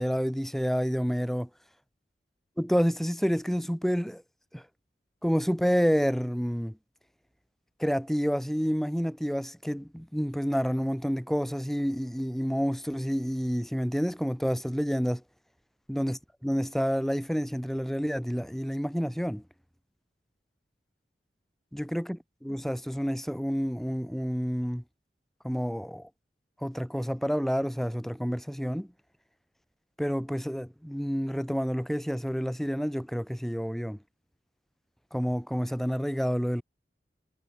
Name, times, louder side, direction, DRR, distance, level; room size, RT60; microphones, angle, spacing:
voice 1, 0.0-1.5 2.6-4.2 4.5-4.6 5.2-6.8 7.8-15.2 15.9-19.4 21.7-24.8 25.4-26.1 26.6-28.9 30.0-34.0 35.1-36.6, equal, ahead, 4.0 m, -29 dB
head